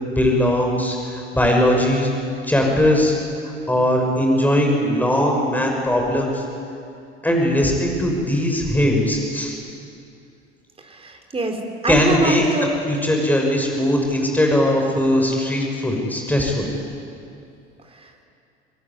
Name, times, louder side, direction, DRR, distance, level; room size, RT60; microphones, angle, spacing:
voice 1, 0.1-2.1 2.4-3.1 3.7-6.4 7.2-9.5 11.9-12.4 12.9-16.7, left 1 dB, 5° left, 1 dB, 6.2 m, -19 dB
voice 2, 10.8-12.7, right 2 dB, 15° right, 4 dB, 4.1 m, -24 dB
25.5 x 21.5 x 9.8 m, 2.5 s
figure-of-eight pair, 70°, 33 cm